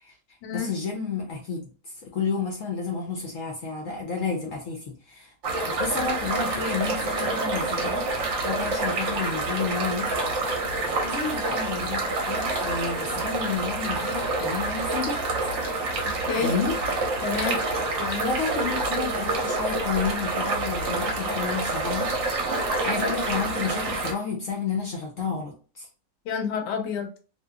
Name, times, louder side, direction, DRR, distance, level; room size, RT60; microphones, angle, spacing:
voice 1, 0.5-1.7 2.0-5.3 5.6-8.1 8.4-10.1 11.0-15.2 16.4-16.8 18.2-22.1 22.8-25.9, left 5 dB, 65° left, -1 dB, 0.8 m, -30 dB
sound 1, 5.4-24.1, right 2 dB, 55° right, 0.8 m, -27 dB
voice 2, 17.2-17.6 18.0-18.3 26.3-27.2, left 6 dB, 85° left, 5 dB, 1.2 m, -29 dB
2.8 x 2.4 x 2.2 m, 0.37 s
omnidirectional pair, 1.8 m